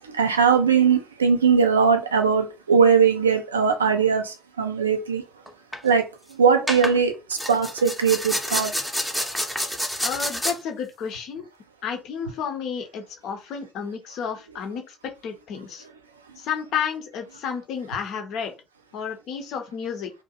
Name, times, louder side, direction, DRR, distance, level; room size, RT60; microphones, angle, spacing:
voice 1, 0.1-5.2 5.8-6.0 6.3-8.7, right 6 dB, 80° right, 0.3 m, -20 dB
sound 1, 5.5-5.8 6.7-7.0 7.3-10.5, equal, ahead, 0.6 m, -28 dB
voice 2, 10.0-11.4 11.8-15.8 16.4-18.5 18.9-20.1, left 7 dB, 55° left, 0.5 m, -31 dB
2.5 x 2.1 x 2.8 m
figure-of-eight pair, 50°, 0 cm